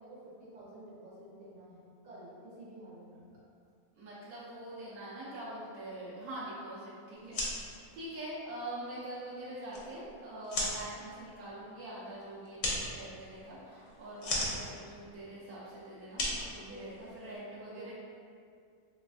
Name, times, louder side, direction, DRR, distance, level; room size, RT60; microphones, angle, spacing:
voice 1, 0.0-3.3 7.2-7.5 10.6-10.8 16.3-16.9 17.5-17.9, right 1 dB, 65° right, -9 dB, 1.6 m, -51 dB
voice 2, 4.0-7.4 7.9-17.9, right 1 dB, 90° right, -9 dB, 1.2 m, -44 dB
sound 1, 7.2-17.4, left 1 dB, 65° left, 1.0 m, -39 dB
3.3 x 3.1 x 2.4 m, 2.4 s
omnidirectional pair, 1.5 m